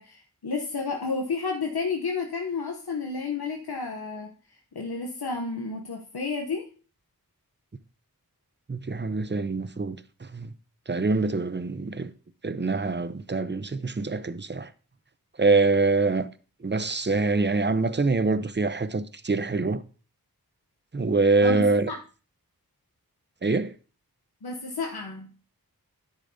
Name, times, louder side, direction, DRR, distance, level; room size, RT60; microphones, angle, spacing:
voice 1, 0.0-6.7 21.4-22.0 24.4-25.3, left 4 dB, 85° left, 0.9 m, -31 dB
voice 2, 8.7-10.5 10.9-12.1 12.4-14.7 15.4-16.3 16.6-19.8 20.9-21.9 23.4-23.7, right 3 dB, 30° right, 0.7 m, -25 dB
10.0 x 9.8 x 2.7 m
wide cardioid pair, 45°, 37 cm